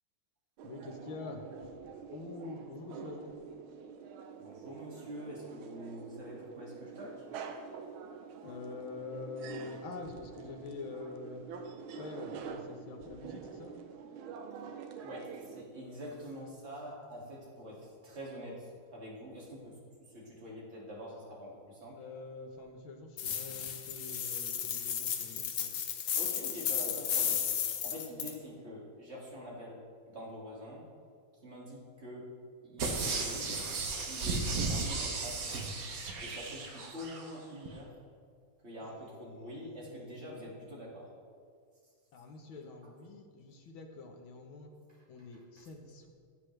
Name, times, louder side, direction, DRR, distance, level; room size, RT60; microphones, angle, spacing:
voice 1, 0.6-1.5 2.1-3.3 8.4-11.4 11.9-13.8 22.0-25.7 39.7-39.8 42.1-44.7 45.1-46.1, left 3 dB, 80° left, 3 dB, 1.9 m, -45 dB
sound 1, 0.6-15.6, right 6 dB, 85° right, 1.5 m, -46 dB
voice 2, 4.4-7.2 15.0-19.7 20.1-21.9 26.1-27.5 27.8-29.8 30.1-30.8 31.4-32.3 32.6-33.5 34.1-35.5 36.2-37.9 38.6-41.1 44.9-45.0, equal, 35° right, -5 dB, 2.5 m, -45 dB
sound 2, 23.2-28.3, left 8 dB, 60° left, 1.2 m, -34 dB
sound 3, 32.8-37.2 37.7-37.8, right 3 dB, 50° right, 1.4 m, -35 dB
16.5 x 8.0 x 3.3 m, 2.1 s
omnidirectional pair, 2.2 m